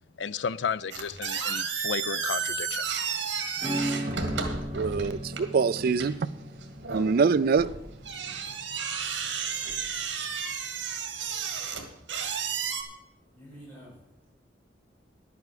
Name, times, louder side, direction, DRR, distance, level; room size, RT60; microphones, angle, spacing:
voice 1, 0.2-2.9, left 6 dB, 75° left, 0.5 m, -33 dB
sound 1, 0.9-12.8, right 6 dB, 80° right, 1.9 m, -33 dB
Acoustic guitar / Strum, 3.6-9.8, equal, 15° right, 1.4 m, -37 dB
voice 2, 4.7-6.1 6.9-7.7, right 5 dB, 55° right, 0.4 m, -24 dB
voice 3, 13.2-14.3, equal, 10° left, 5.4 m, -49 dB
11.0 x 8.4 x 6.7 m
head